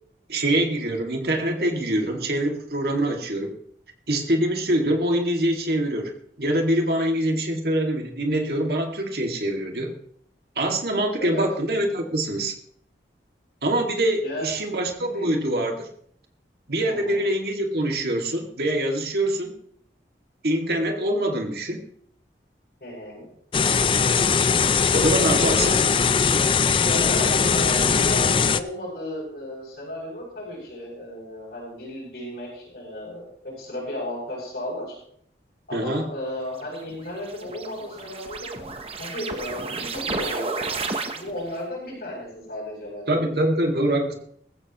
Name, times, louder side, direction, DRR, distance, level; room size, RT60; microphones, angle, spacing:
voice 1, 0.3-3.6 4.1-6.1 6.4-9.9 10.6-12.5 13.6-15.9 16.7-19.5 20.4-21.8 24.9-25.8 35.7-36.1 43.1-44.1, right 1 dB, 60° right, 2 dB, 2.3 m, -24 dB
voice 2, 15.0-15.4 16.9-17.2 22.8-23.3 25.6-25.8 26.8-35.0 35.7-38.7 39.0-40.7 41.1-43.3, left 1 dB, 55° left, -8 dB, 7.5 m, -34 dB
sound 1, 23.5-28.6, left 5 dB, 30° left, 0.5 m, -20 dB
sound 2, 36.6-41.6, right 3 dB, 30° right, 1.0 m, -32 dB
20.0 x 15.0 x 3.1 m, 0.65 s
head